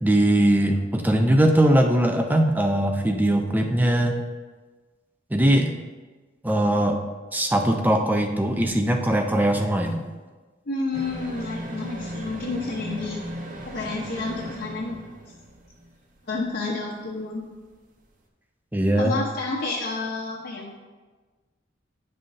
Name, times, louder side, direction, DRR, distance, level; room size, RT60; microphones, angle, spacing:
voice 1, 0.0-4.2 5.3-5.7 6.4-7.0 7.3-10.0 18.7-19.2, right 1 dB, 10° right, 4 dB, 0.5 m, -20 dB
voice 2, 10.7-13.2 13.7-15.0 16.3-17.4 19.0-20.7, left 3 dB, 60° left, -5 dB, 0.8 m, -30 dB
sound 1, 10.9-15.9 16.2-16.3, equal, 45° right, 0.7 m, -36 dB
9.5 x 5.6 x 2.6 m, 1.3 s
head